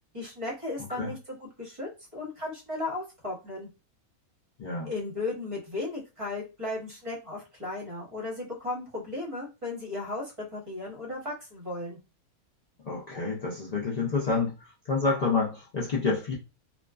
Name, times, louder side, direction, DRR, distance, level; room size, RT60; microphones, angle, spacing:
voice 1, 0.1-3.7 4.8-12.0, left 2 dB, 25° right, 0.8 m, -35 dB
voice 2, 4.6-4.9 12.8-14.5 14.9-16.3, left 4 dB, 85° left, 0.3 m, -28 dB
2.4 x 2.3 x 2.3 m
omnidirectional pair, 1.5 m